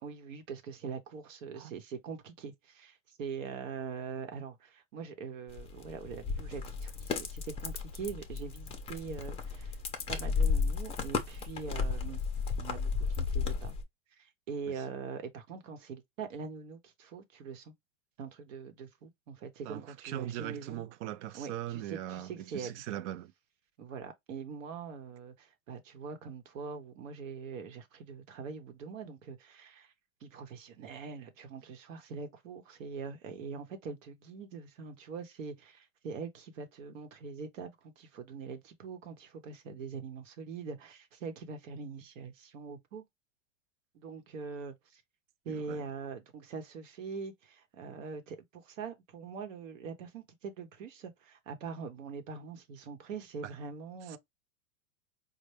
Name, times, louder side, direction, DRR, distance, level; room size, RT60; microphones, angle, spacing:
voice 1, 0.0-9.8 10.1-12.2 12.6-13.7 14.2-17.7 18.2-20.8 21.3-22.8 23.8-29.9 30.2-43.0 43.9-45.0 45.4-54.2, right 5 dB, 80° right, 1.0 m, -43 dB
sound 1, 5.5-13.8, left 5 dB, 15° left, 0.5 m, -34 dB
voice 2, 19.7-23.3 45.5-45.9 54.1-54.2, right 12 dB, 65° right, 0.5 m, -40 dB
4.3 x 2.2 x 3.2 m
supercardioid pair, 135°, 38 cm